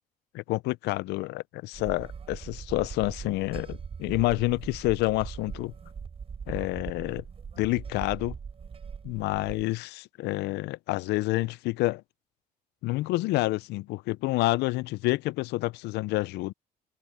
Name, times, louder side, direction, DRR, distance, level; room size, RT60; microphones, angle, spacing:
voice 1, 0.3-5.7 6.5-7.2 7.6-8.3 9.0-12.0 12.8-16.5, left 20 dB, 80° left, 0.5 m, -28 dB
sound 1, 1.7-9.6, right 6 dB, 35° right, 3.4 m, -41 dB
cardioid pair, 110°, 17 cm